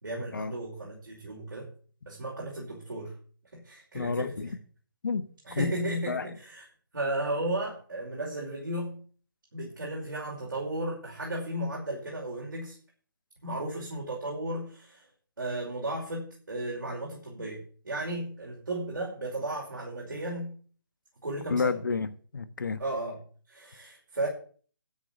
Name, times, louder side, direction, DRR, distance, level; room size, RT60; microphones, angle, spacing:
voice 1, 0.0-1.7 2.1-3.2 3.5-4.5 5.4-6.7 6.9-9.0 9.5-12.8 13.4-15.1 15.4-20.6 21.2-21.8 22.8-24.3, right 1 dB, 70° right, 5.5 m, -34 dB
voice 2, 3.9-4.5 5.0-5.2 5.5-5.6 6.1-6.2 21.5-22.8, left 5 dB, 65° left, 1.3 m, -30 dB
13.0 x 6.5 x 7.5 m
figure-of-eight pair, 140°, 11 cm